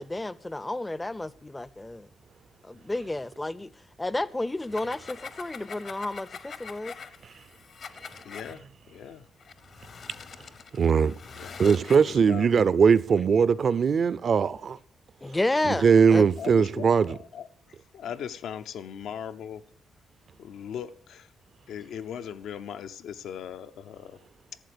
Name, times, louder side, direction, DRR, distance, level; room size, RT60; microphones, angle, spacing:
voice 1, 0.0-2.1 2.6-3.7 4.0-6.9 15.2-16.3, left 2 dB, 15° left, 0.4 m, -31 dB
sound 1, 4.5-8.6 9.4-12.2, left 6 dB, 50° left, 0.7 m, -44 dB
voice 2, 8.2-9.3 11.3-12.5 16.4-19.6 20.4-21.3 21.7-24.2, left 8 dB, 85° left, 0.6 m, -39 dB
voice 3, 10.8-11.1 11.6-14.8 15.7-17.2, right 6 dB, 45° right, 0.4 m, -20 dB
12.0 x 7.8 x 6.7 m
cardioid pair, 140°, 0 cm